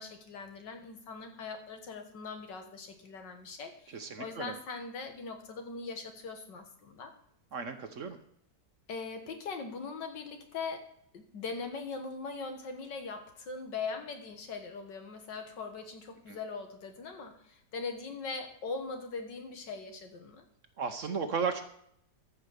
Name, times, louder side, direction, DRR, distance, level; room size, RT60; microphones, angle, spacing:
voice 1, 0.0-7.1 8.9-10.9 11.1-20.5, left 4 dB, 85° left, 5 dB, 2.1 m, -41 dB
voice 2, 3.9-4.5 7.5-8.2 16.3-16.4 20.8-21.6, right 5 dB, 55° right, 8 dB, 1.0 m, -34 dB
14.0 x 5.1 x 6.6 m, 0.69 s
omnidirectional pair, 1.9 m